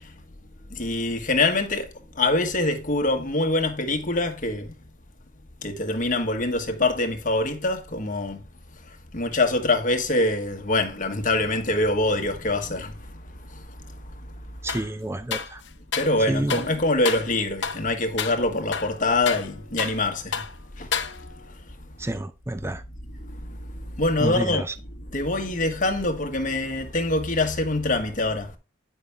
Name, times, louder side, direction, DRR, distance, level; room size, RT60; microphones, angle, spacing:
voice 1, 0.7-1.9 2.2-4.7 5.6-8.4 9.1-12.9 13.5-13.6 15.9-20.4 20.8-20.9 23.5-23.6 24.0-24.7 25.1-28.5, left 2 dB, 45° left, 1.3 m, -24 dB
voice 2, 14.6-15.6 16.3-16.6 22.0-22.8 24.2-24.7, right 1 dB, 15° right, 0.5 m, -29 dB
sound 1, 14.7-14.9 15.3-16.2 16.5-16.7 17.1-17.3 17.6-17.9 18.2-18.4 18.7-20.1 20.3-20.6 20.9-21.5, left 6 dB, 65° left, 0.8 m, -30 dB
9.4 x 5.6 x 3.5 m
head